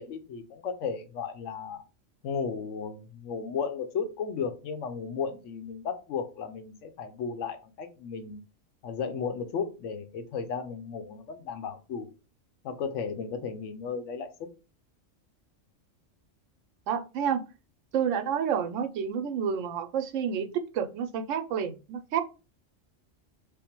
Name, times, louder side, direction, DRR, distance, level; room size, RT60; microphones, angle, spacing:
voice 1, 0.0-1.8 2.2-8.4 8.8-12.1 12.6-14.3, left 6 dB, 75° left, 8 dB, 1.0 m, -34 dB
voice 2, 16.9-17.5 17.9-20.5 20.7-22.2, right 7 dB, 80° right, 7 dB, 0.9 m, -29 dB
3.5 x 2.1 x 4.4 m, 0.32 s
omnidirectional pair, 1.3 m